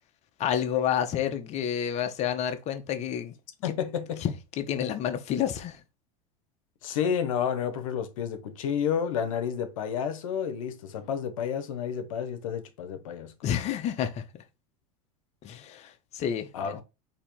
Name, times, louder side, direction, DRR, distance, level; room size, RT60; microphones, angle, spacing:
voice 1, 0.4-3.3 4.2-5.8 13.4-14.2 15.4-16.8, left 9 dB, 40° left, 0.8 m, -29 dB
voice 2, 3.6-4.2 6.8-13.3 16.5-16.8, left 8 dB, 80° left, 0.8 m, -30 dB
4.2 x 2.8 x 4.4 m
hypercardioid pair, 100°, 17 cm